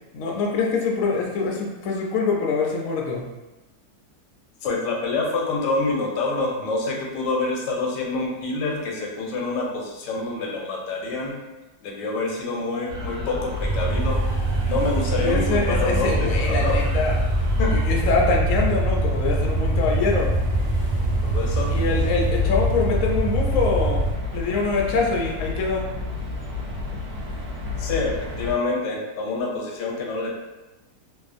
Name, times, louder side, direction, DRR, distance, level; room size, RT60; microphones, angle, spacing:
voice 1, 0.1-3.2 15.1-17.2 17.7-20.3 21.7-24.0 24.3-25.9, left 4 dB, 70° left, 0 dB, 0.8 m, -24 dB
voice 2, 4.6-11.4 11.8-14.2 14.7-16.8 17.6-17.8 21.2-21.7 27.8-30.3, left 3 dB, 85° left, 0 dB, 1.2 m, -27 dB
sound 1, 12.9-28.5, left 2 dB, 65° right, 0.9 m, -29 dB
sound 2, 13.6-24.1, right 2 dB, 25° right, 0.4 m, -24 dB
2.6 x 2.4 x 2.4 m, 1.1 s
omnidirectional pair, 1.8 m